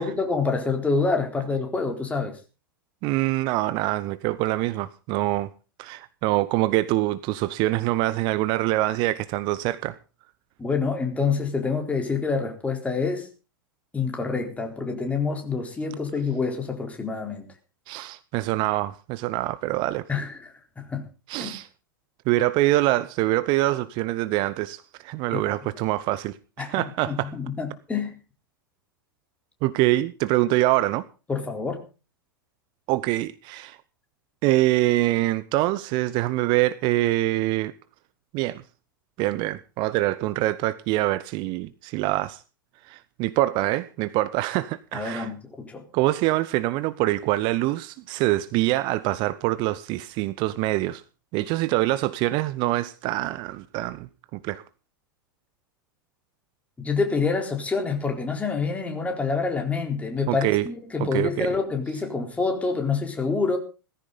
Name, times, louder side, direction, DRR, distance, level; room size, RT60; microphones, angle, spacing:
voice 1, 0.0-2.4 10.6-13.3 13.9-17.5 20.1-21.1 21.4-21.5 25.3-25.4 26.6-28.1 31.3-31.8 44.9-45.8 56.8-63.6, left 4 dB, 10° left, 4.1 m, -27 dB
voice 2, 3.0-5.5 5.8-10.0 17.9-20.1 21.3-21.7 22.3-27.3 29.6-31.1 32.9-33.8 34.4-37.7 38.3-38.6 39.2-42.4 42.8-45.3 45.9-51.0 51.3-54.6 60.3-60.7 61.0-61.6, right 17 dB, 40° right, 0.9 m, -25 dB
18.0 x 15.0 x 4.1 m
figure-of-eight pair, 95°, 12 cm